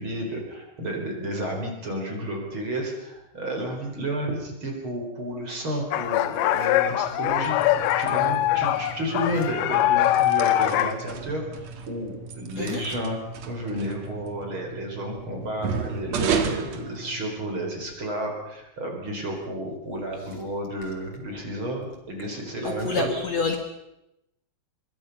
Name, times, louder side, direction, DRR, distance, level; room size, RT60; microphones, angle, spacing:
voice 1, 0.0-7.6 8.0-13.2 13.5-23.2, right 1 dB, 30° right, 2 dB, 5.0 m, -32 dB
sound 1, 5.9-10.9, left 13 dB, 85° left, 3.3 m, -23 dB
sound 2, 7.2-17.7, right 5 dB, 50° right, 2.2 m, -34 dB
voice 2, 12.6-12.9 22.6-23.6, left 3 dB, 50° left, 4 dB, 2.4 m, -27 dB
25.0 x 22.5 x 5.6 m, 0.86 s
omnidirectional pair, 5.0 m